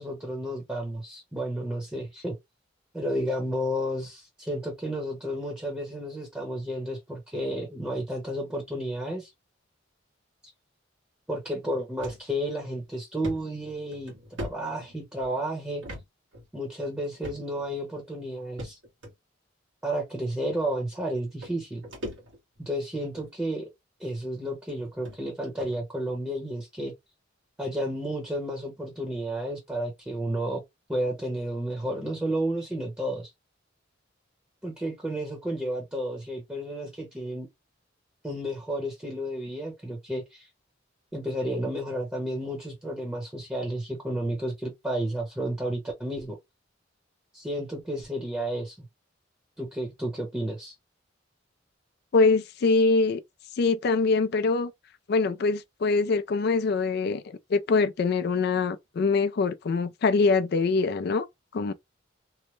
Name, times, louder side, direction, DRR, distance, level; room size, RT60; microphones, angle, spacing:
voice 1, 0.0-2.4 2.9-9.3 11.3-14.1 14.4-15.8 16.5-18.8 19.8-21.8 22.6-23.7 24.0-26.9 27.6-30.6 30.9-33.3 34.6-37.5 38.2-40.5 41.1-46.4 47.3-48.9 49.6-50.7, right 1 dB, 10° right, 0.9 m, -32 dB
sound 1, 12.0-12.2 12.6-12.7 13.2-15.3 15.8-16.0 16.3-16.5 17.2-17.7 18.6-19.1 20.0-20.1 21.1-21.2 21.4-22.6 23.0-23.3 24.1-24.2 24.7-24.8 25.0-25.2 25.6-25.8, equal, 80° right, 1.4 m, -40 dB
voice 2, 52.1-53.2 53.6-54.7 55.1-61.3 61.5-61.7, left 4 dB, 55° left, 0.4 m, -24 dB
3.1 x 2.1 x 3.0 m
head